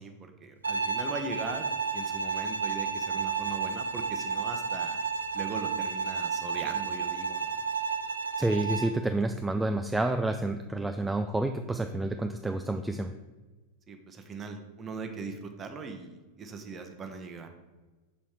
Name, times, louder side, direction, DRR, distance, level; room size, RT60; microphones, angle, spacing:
voice 1, 0.0-5.0 5.3-7.6 13.9-17.5, right 4 dB, 25° right, 6 dB, 0.9 m, -40 dB
Bowed string instrument, 0.6-9.0, right 5 dB, 75° right, 0.5 m, -32 dB
voice 2, 8.4-13.1, right 2 dB, 5° right, 6 dB, 0.3 m, -29 dB
7.4 x 4.2 x 4.7 m, 1.2 s
figure-of-eight pair, 90°, 0 cm